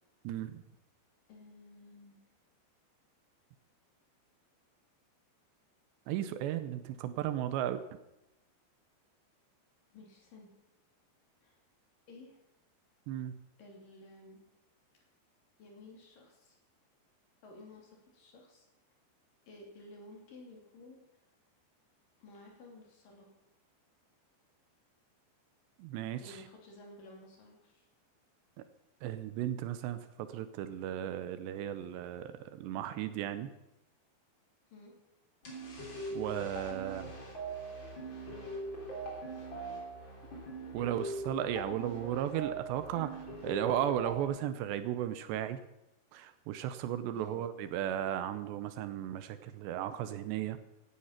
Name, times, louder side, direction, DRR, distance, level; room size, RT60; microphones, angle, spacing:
voice 1, 0.2-0.6 6.1-7.8 13.1-13.3 25.8-26.4 28.6-28.7 29.0-33.5 36.1-37.1 40.7-45.6 46.1-50.6, right 11 dB, 80° right, 11 dB, 2.9 m, -35 dB
voice 2, 1.3-2.2 9.9-10.5 11.4-11.6 12.1-12.4 13.6-14.4 15.6-16.6 17.4-18.7 19.5-21.0 22.2-23.3 26.2-27.9 34.7-34.9 47.1-47.4, left 2 dB, 50° left, 0 dB, 4.3 m, -53 dB
sound 1, 35.4-44.2, right 2 dB, 30° left, 3.9 m, -41 dB
16.5 x 12.0 x 5.8 m, 0.88 s
omnidirectional pair, 5.2 m